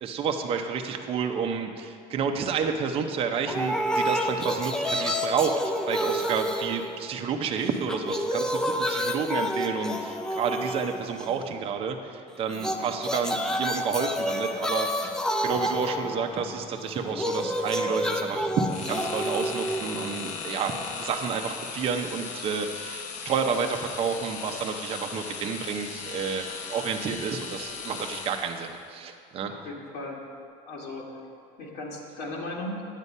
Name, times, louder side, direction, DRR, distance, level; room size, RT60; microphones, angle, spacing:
voice 1, 0.0-15.1 15.4-18.5 18.9-29.5, right 6 dB, 30° right, 4 dB, 0.6 m, -30 dB
sound 1, 3.5-7.4 7.7-11.5 12.5-20.5, equal, 5° left, 0.3 m, -29 dB
sound 2, 18.7-28.8, left 5 dB, 45° left, 0.8 m, -37 dB
voice 2, 29.5-30.2 30.7-31.1 31.6-32.8, left 2 dB, 70° left, -2 dB, 2.0 m, -36 dB
9.7 x 8.3 x 5.4 m, 2.3 s
cardioid pair, 175°, 18 cm